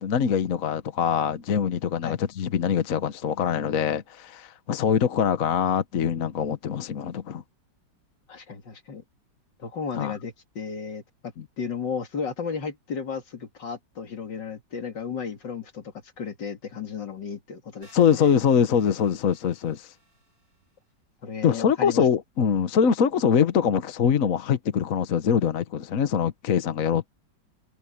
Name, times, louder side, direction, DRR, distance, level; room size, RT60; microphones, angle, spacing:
voice 1, 0.0-7.4 10.0-10.1 17.9-19.9 21.4-27.1, left 7 dB, 55° left, 1.3 m, -23 dB
voice 2, 8.3-9.0 9.6-11.0 11.6-18.4 21.2-22.1, left 6 dB, 75° left, 3.0 m, -34 dB
sound 1, 17.8-20.7, right 1 dB, 80° right, 7.6 m, -57 dB
omnidirectional pair, 1.9 m